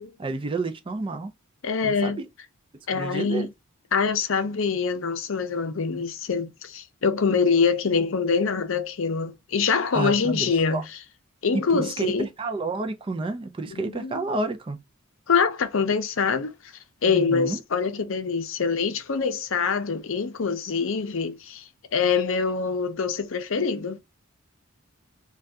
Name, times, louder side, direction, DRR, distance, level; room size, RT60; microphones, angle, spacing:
voice 1, 0.2-1.3 1.8-2.3 2.9-3.5 9.9-10.8 11.5-14.8 17.0-17.6, right 3 dB, 25° right, 0.4 m, -30 dB
voice 2, 1.6-2.2 2.9-3.5 3.9-10.8 11.4-12.3 13.7-14.2 15.3-16.5 17.0-24.0, left 5 dB, 65° left, 0.6 m, -25 dB
2.6 x 2.3 x 3.3 m
head